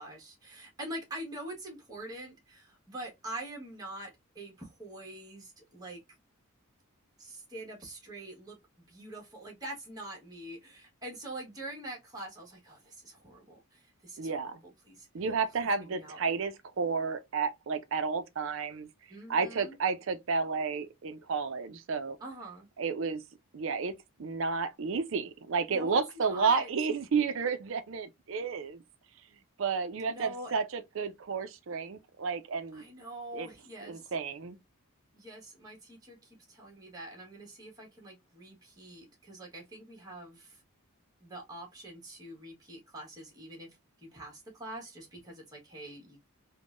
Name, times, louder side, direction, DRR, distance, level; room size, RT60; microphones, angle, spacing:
voice 1, 0.0-6.0 7.2-8.6 8.9-14.5 14.9-15.1 15.6-16.2 19.1-19.7 22.2-22.7 25.7-26.7 30.1-30.5 32.7-34.1 35.1-40.6 41.2-46.2, right 1 dB, 15° right, 1.2 m, -45 dB
voice 2, 14.2-14.6 15.1-18.9 19.3-22.2 22.8-23.2 23.5-23.9 24.2-28.8 29.6-32.8 33.3-33.5 33.8-34.6, right 5 dB, 60° right, 0.4 m, -31 dB
3.5 x 2.1 x 2.4 m
head